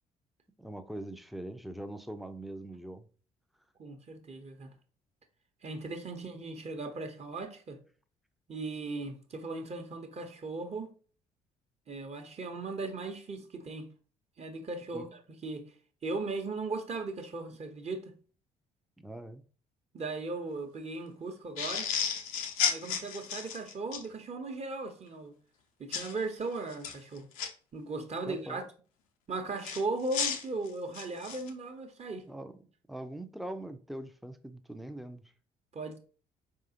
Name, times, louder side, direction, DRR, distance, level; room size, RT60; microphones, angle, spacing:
voice 1, 0.6-3.1 14.9-15.0 19.0-19.4 28.3-28.6 32.3-32.6 32.9-35.3, right 1 dB, ahead, 0.6 m, -42 dB
voice 2, 3.8-4.7 5.6-7.8 8.5-10.9 11.9-13.9 14.4-15.7 16.0-18.1 19.9-21.9 22.7-25.3 25.8-27.3 27.7-28.6 29.3-32.3 35.7-36.0, right 3 dB, 35° right, 1.0 m, -37 dB
sound 1, 21.6-24.0 25.9-26.1 26.7-27.5 29.6-31.5, left 7 dB, 75° left, 0.7 m, -33 dB
4.8 x 3.6 x 2.8 m
figure-of-eight pair, 50°, 18 cm